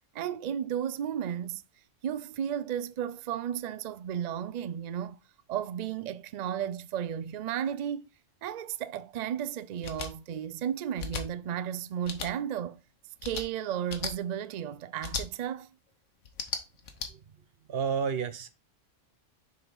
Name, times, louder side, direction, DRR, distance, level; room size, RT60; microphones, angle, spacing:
voice 1, 0.1-1.6 2.0-5.2 5.5-8.1 8.4-12.8 13.2-15.7, right 9 dB, 85° right, 0.3 m, -34 dB
sound 1, 9.8-10.1 11.0-11.2 12.0-12.3 13.2-13.4 13.9-14.1 15.0-15.2 16.2-17.1, left 5 dB, 80° left, 1.4 m, -35 dB
voice 2, 17.7-18.5, right 7 dB, 55° right, 0.9 m, -31 dB
6.7 x 4.2 x 4.1 m
omnidirectional pair, 1.3 m